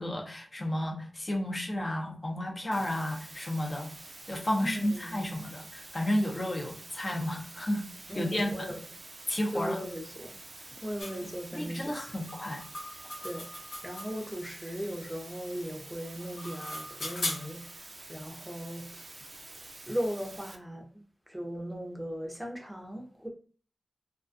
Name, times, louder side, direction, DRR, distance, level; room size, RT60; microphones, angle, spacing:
voice 1, 0.0-3.9 4.3-7.9 8.1-8.5 9.3-9.8 11.5-12.6, left 1 dB, 40° left, 0.6 m, -32 dB
sound 1, 2.7-20.6, right 2 dB, 50° right, 0.4 m, -48 dB
voice 2, 4.6-5.4 8.1-8.8 9.5-10.4 10.8-12.1 13.2-13.5 13.8-19.1 19.9-23.3, equal, 5° right, 0.6 m, -38 dB
sound 2, 11.0-11.2 12.3-14.4 16.1-17.7, left 1 dB, 90° left, 0.7 m, -38 dB
2.3 x 2.2 x 2.5 m
cardioid pair, 55°, 0 cm